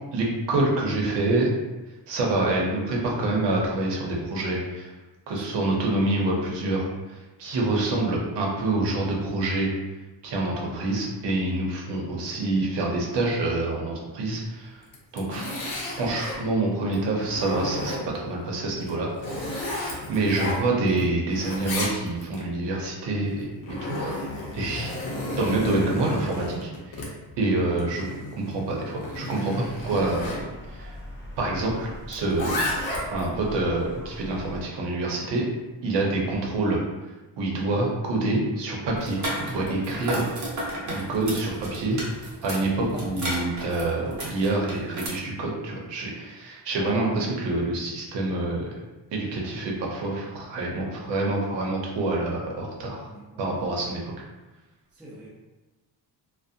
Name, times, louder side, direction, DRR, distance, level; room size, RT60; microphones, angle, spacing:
voice 1, 0.1-1.5 2.1-4.9 5.3-9.7 10.2-14.8 15.1-15.5 16.0-23.5 23.8-24.2 24.5-25.0 25.3-27.1 27.4-28.0 28.4-31.0 31.4-32.6 33.1-35.4 35.8-36.8 37.4-40.3 40.9-42.0 42.4-48.8 49.1-53.1 53.4-54.0, right 2 dB, 75° right, -2 dB, 0.7 m, -27 dB
voice 2, 5.3-5.7 11.0-11.3 15.3-15.6 46.9-47.2 53.1-53.8 54.9-55.3, right 1 dB, 5° right, -7 dB, 0.3 m, -47 dB
Zipper (clothing), 14.8-16.4 16.9-18.3 18.8-21.0 21.3-22.4 23.3-30.4 32.1-33.3, left 1 dB, 60° left, 0.7 m, -33 dB
sound 1, 29.6-34.6, equal, 25° left, 0.8 m, -42 dB
sound 2, 39.0-45.1, right 1 dB, 45° right, 0.7 m, -34 dB
2.4 x 2.1 x 2.6 m, 1.1 s
cardioid pair, 175°, 42 cm